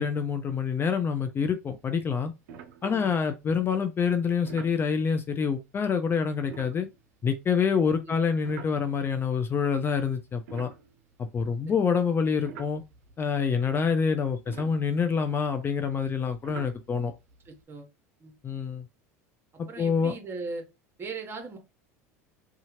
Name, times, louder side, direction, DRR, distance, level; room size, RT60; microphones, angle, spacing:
voice 1, 0.0-2.3 2.8-6.9 7.2-10.7 11.3-12.8 13.2-17.1 18.4-18.9 19.6-20.1, left 6 dB, 25° left, 0.5 m, -26 dB
sound 1, 1.6-1.9 2.1-2.2 2.5-3.3 4.4-4.8 6.4-9.3 9.9-11.6 12.2-17.6, right 7 dB, 70° right, 0.6 m, -48 dB
voice 2, 17.4-17.9 18.2-18.3 19.7-20.6 21.0-21.6, right 3 dB, 30° right, 1.2 m, -38 dB
2.7 x 2.4 x 2.9 m
hypercardioid pair, 85°, 8 cm